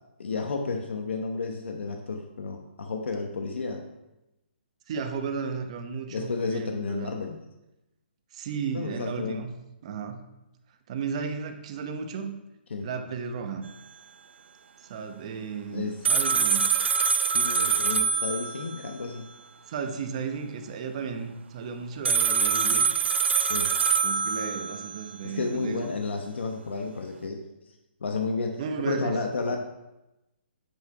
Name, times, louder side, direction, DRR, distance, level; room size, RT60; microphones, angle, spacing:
voice 1, 0.2-3.8 6.1-7.4 8.7-9.4 12.7-12.9 15.7-16.0 17.3-19.3 23.4-23.7 25.2-27.8 28.0-29.6, left 4 dB, 80° left, 4 dB, 1.1 m, -32 dB
voice 2, 4.9-7.1 8.3-9.5 9.8-10.2 10.9-12.4 12.8-13.7 14.9-16.7 19.7-22.9 24.0-26.0 28.6-29.2, right 6 dB, 35° right, 6 dB, 0.9 m, -34 dB
sound 1, 16.0-18.9 22.0-25.0, right 6 dB, 85° right, 0.6 m, -24 dB
8.5 x 6.1 x 4.8 m, 0.95 s
hypercardioid pair, 165°, 6 cm